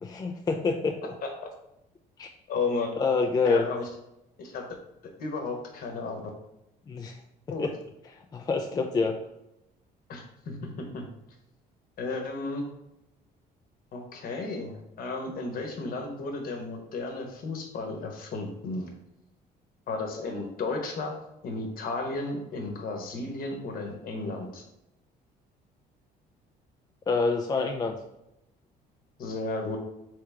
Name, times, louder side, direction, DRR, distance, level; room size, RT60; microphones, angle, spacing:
voice 1, 0.0-1.1 2.2-2.3 3.0-3.7 6.9-7.2 7.6-7.8 8.3-9.2 27.1-28.0, left 4 dB, 25° left, 2 dB, 0.4 m, -27 dB
voice 2, 2.5-2.9 3.4-3.9 4.4-4.6 5.0-6.2 7.5-7.7 10.1-11.1 12.0-12.7 13.9-18.9 19.9-21.2 21.4-24.6 29.2-29.8, left 3 dB, 60° left, 2 dB, 1.0 m, -33 dB
3.5 x 3.3 x 3.3 m, 0.87 s
cardioid pair, 110°, 17 cm